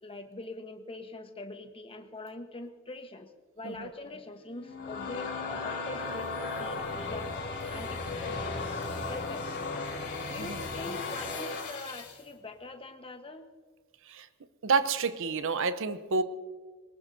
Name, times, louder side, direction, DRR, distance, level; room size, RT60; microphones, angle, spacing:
voice 1, 0.0-3.3 3.6-6.3 6.6-7.3 7.7-8.5 9.1-9.8 10.3-13.4, left 2 dB, 25° left, 6 dB, 1.1 m, -43 dB
sound 1, 4.5-12.2, left 3 dB, 55° left, 3.3 m, -36 dB
voice 2, 14.6-16.2, right 4 dB, 65° right, 12 dB, 0.8 m, -29 dB
22.0 x 19.0 x 2.7 m, 1.5 s
head